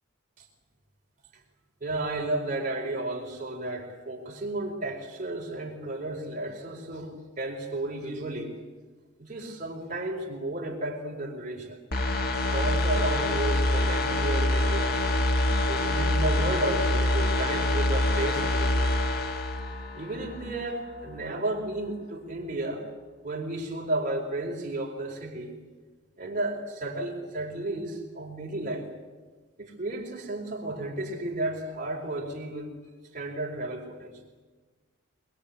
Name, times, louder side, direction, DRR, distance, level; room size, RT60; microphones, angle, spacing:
voice 1, 1.8-8.5 9.2-11.8 12.4-15.0 15.7-19.0 19.9-22.8 23.2-25.6 26.2-28.9 29.6-32.7 33.1-34.2, right 2 dB, 40° right, 0 dB, 4.3 m, -33 dB
sound 1, 11.9-20.6 20.9-21.0, left 1 dB, 50° left, 1.7 m, -25 dB
24.5 x 22.5 x 8.5 m, 1.3 s
head